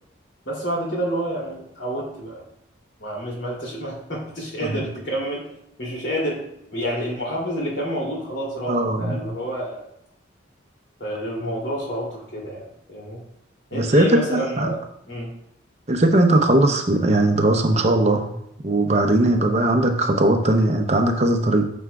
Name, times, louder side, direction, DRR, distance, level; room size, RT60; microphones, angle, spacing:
voice 1, 0.4-2.4 3.0-5.5 5.8-6.4 6.7-9.9 11.0-13.2 13.7-14.8 15.1-15.3, equal, 65° left, -3 dB, 2.7 m, -29 dB
voice 2, 8.7-9.2 13.7-14.7 15.9-18.3 18.6-21.7, right 1 dB, 35° right, 4 dB, 0.6 m, -19 dB
9.5 x 6.1 x 2.3 m, 0.77 s
head